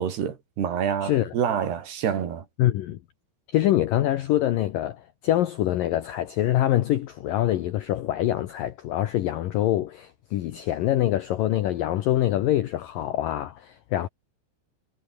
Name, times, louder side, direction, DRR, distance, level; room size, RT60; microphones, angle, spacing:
voice 1, 0.0-2.4, right 8 dB, 65° right, 4.9 m, -27 dB
voice 2, 1.0-1.3 2.6-3.0 3.5-14.1, left 13 dB, 80° left, 2.1 m, -25 dB
omnidirectional pair, 5.3 m